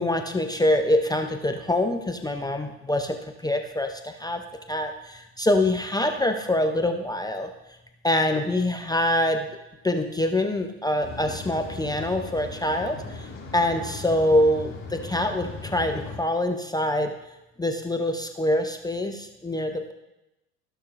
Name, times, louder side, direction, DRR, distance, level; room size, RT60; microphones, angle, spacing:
voice 1, 0.0-3.2 3.4-4.4 4.7-7.5 8.0-9.5 9.8-17.1 17.6-19.9, left 1 dB, 10° left, 5 dB, 0.6 m, -25 dB
sound 1, 11.0-16.2, left 4 dB, 30° left, 3.1 m, -38 dB
15.0 x 6.2 x 2.5 m, 0.93 s
hypercardioid pair, 75°, 43 cm